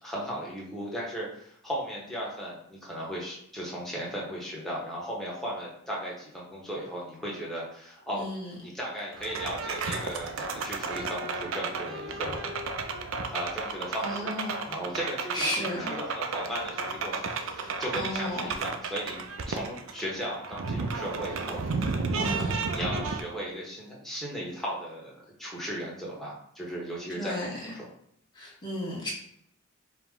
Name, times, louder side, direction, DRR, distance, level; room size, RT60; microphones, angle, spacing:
voice 1, 0.0-8.3 8.6-12.5 13.3-25.1 25.4-27.9, equal, ahead, -5 dB, 1.0 m, -36 dB
voice 2, 8.1-8.5 14.0-14.6 15.3-15.9 17.6-18.5 22.2-22.5 27.2-27.7 28.3-29.1, left 1 dB, 20° left, -5 dB, 1.2 m, -34 dB
sound 1, 9.1-23.2, right 4 dB, 75° right, 0.4 m, -33 dB
4.8 x 2.2 x 3.6 m, 0.73 s
head